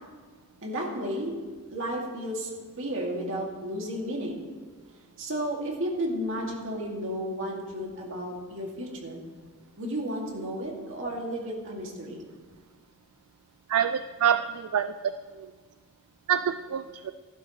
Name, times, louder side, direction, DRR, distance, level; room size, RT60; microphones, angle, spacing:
voice 1, 0.6-1.3 1.7-2.5 2.8-4.4 5.2-9.2 9.8-12.2, equal, 65° right, -1 dB, 2.4 m, -33 dB
voice 2, 13.7-15.1 15.4-15.5 16.3-17.1, right 8 dB, 85° right, 10 dB, 0.4 m, -26 dB
15.0 x 11.5 x 3.2 m, 1.5 s
head